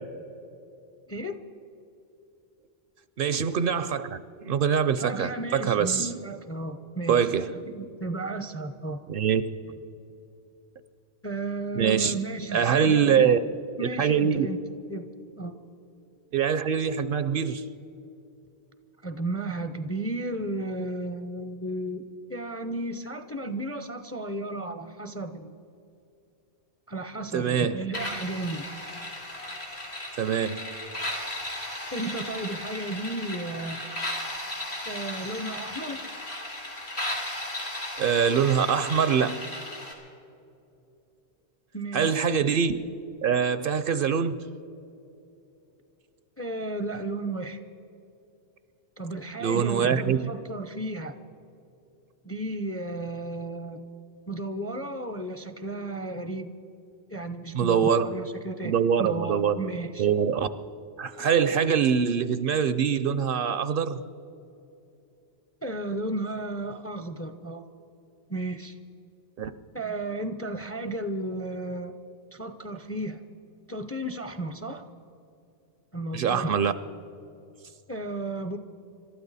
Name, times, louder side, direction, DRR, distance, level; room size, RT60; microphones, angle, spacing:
voice 1, 1.1-1.4 5.0-9.0 11.2-13.5 13.8-14.6 14.9-15.1 15.4-15.5 19.0-25.5 26.9-28.7 31.9-33.8 34.9-36.0 41.7-42.5 46.4-47.6 49.0-51.1 52.2-53.8 54.3-56.5 57.1-58.7 59.0-60.1 65.6-67.6 68.3-68.8 69.7-71.9 72.3-73.2 73.7-74.8 75.9-76.6 77.9-78.6, right 2 dB, 20° left, 9 dB, 0.5 m, -33 dB
voice 2, 3.2-4.2 4.4-6.1 7.1-7.6 9.1-9.4 11.8-12.1 12.5-13.4 13.8-14.5 16.3-17.6 27.3-27.8 30.2-30.6 38.0-39.5 41.9-42.7 43.2-44.5 49.4-50.3 57.5-58.1 58.6-59.6 60.0-60.5 61.0-64.0 69.4-69.5 76.1-76.7, right 7 dB, 60° right, 13 dB, 0.7 m, -24 dB
sound 1, 27.9-39.9, left 1 dB, 80° left, 3.0 m, -35 dB
27.0 x 12.5 x 4.1 m, 2.8 s
omnidirectional pair, 1.1 m